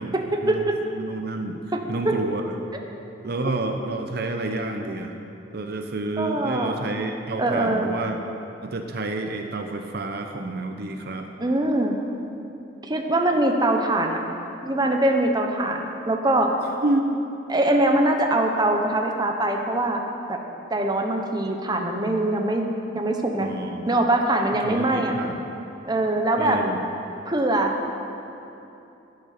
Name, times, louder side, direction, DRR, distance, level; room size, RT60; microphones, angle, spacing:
voice 1, 0.1-0.8 2.0-2.1 6.2-6.7 7.4-7.9 11.4-11.9 12.8-14.2 14.6-16.5 17.5-20.0 20.3-20.4 20.7-22.7 22.9-23.5 23.9-25.1 25.9-26.6 27.2-27.7, right 1 dB, 20° right, 3 dB, 1.0 m, -22 dB
voice 2, 0.9-1.6 1.9-2.5 3.2-5.2 5.5-8.2 8.6-11.3 16.8-17.3 23.4-24.0 24.6-25.5 26.4-26.8, right 2 dB, 60° right, 5 dB, 0.8 m, -29 dB
10.5 x 10.5 x 6.7 m, 2.9 s
head